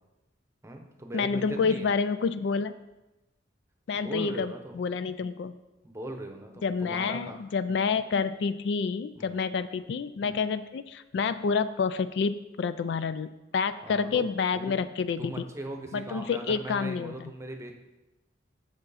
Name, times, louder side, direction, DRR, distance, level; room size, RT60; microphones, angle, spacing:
voice 1, 0.6-1.9 4.0-4.8 5.8-7.4 9.2-9.4 10.2-10.5 13.8-14.3 14.5-14.7 15.2-17.7, right 1 dB, 15° right, 4 dB, 0.8 m, -39 dB
voice 2, 1.1-2.7 3.9-5.6 6.6-15.4 15.9-17.3, left 5 dB, 65° left, 13 dB, 0.3 m, -28 dB
7.9 x 7.1 x 4.1 m, 1.0 s
head